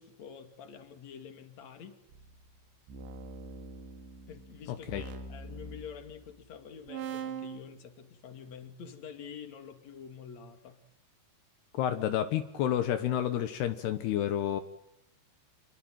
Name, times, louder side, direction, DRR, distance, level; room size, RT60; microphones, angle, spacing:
voice 1, 0.0-2.0 4.3-10.8, left 7 dB, 45° left, 7 dB, 3.3 m, -47 dB
sound 1, 2.1-6.5 6.9-7.6, right 5 dB, 80° right, 4.7 m, -43 dB
voice 2, 11.8-14.6, left 11 dB, 75° left, 9 dB, 3.1 m, -30 dB
28.5 x 22.5 x 9.3 m, 0.77 s
omnidirectional pair, 5.1 m